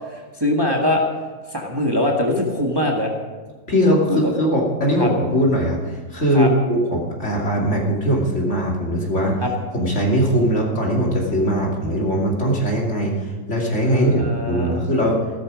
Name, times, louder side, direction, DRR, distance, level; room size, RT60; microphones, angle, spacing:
voice 1, 0.1-1.0 1.5-3.1 4.1-4.3 5.0-5.1 6.3-6.5 9.4-9.5 13.8-14.8, left 1 dB, 15° right, 0 dB, 1.7 m, -22 dB
voice 2, 3.7-9.4 9.7-15.2, equal, 55° left, -2 dB, 3.1 m, -20 dB
15.5 x 12.5 x 5.1 m, 1.4 s
omnidirectional pair, 1.5 m